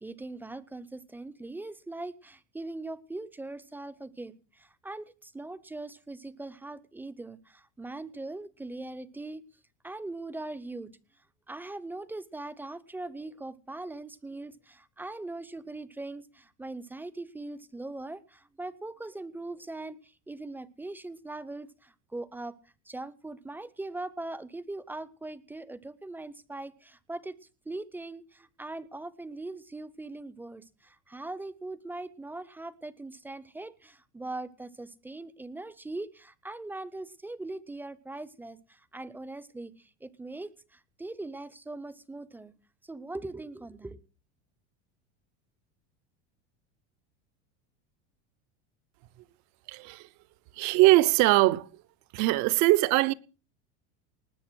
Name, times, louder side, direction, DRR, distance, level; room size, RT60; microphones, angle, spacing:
voice 1, 0.0-9.4 9.8-10.9 11.5-22.6 22.9-27.4 27.7-42.5 42.8-44.0, right 2 dB, 5° right, 0.6 m, -41 dB
voice 2, 49.7-50.1 50.5-51.7 52.1-53.1, right 18 dB, 55° right, 0.8 m, -22 dB
19.5 x 6.8 x 6.2 m
supercardioid pair, 130°, 34 cm